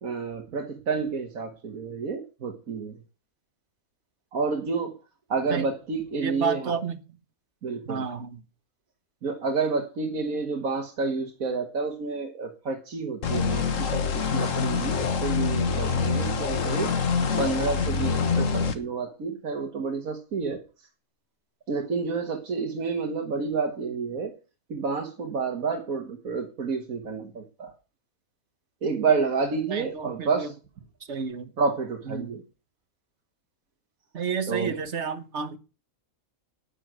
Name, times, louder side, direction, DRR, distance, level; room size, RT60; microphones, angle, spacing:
voice 1, 0.0-3.0 4.3-5.0 5.3-6.7 7.6-8.0 9.2-20.9 21.7-24.4 24.7-27.7 28.8-30.5 31.6-32.4 34.5-34.8, right 4 dB, 75° right, 2 dB, 1.9 m, -29 dB
voice 2, 6.2-7.0 7.8-8.4 29.7-30.5 31.1-31.5 32.1-32.4 34.1-35.6, right 6 dB, 55° right, 10 dB, 1.5 m, -31 dB
sound 1, 13.2-18.7, left 5 dB, 65° left, 1.6 m, -25 dB
10.5 x 10.0 x 6.2 m, 0.32 s
omnidirectional pair, 1.5 m